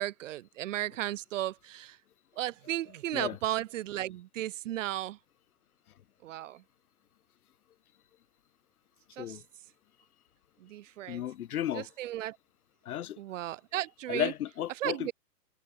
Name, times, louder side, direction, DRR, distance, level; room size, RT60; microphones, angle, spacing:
voice 1, 0.0-2.0 2.4-5.2 6.2-6.6 9.2-9.4 10.6-11.2 11.7-12.4 13.2-14.3 14.8-15.1, right 14 dB, 50° right, 1.4 m, -35 dB
voice 2, 11.1-11.9 12.9-13.2 14.1-15.1, left 11 dB, 60° left, 1.8 m, -34 dB
hypercardioid pair, 145°, 49 cm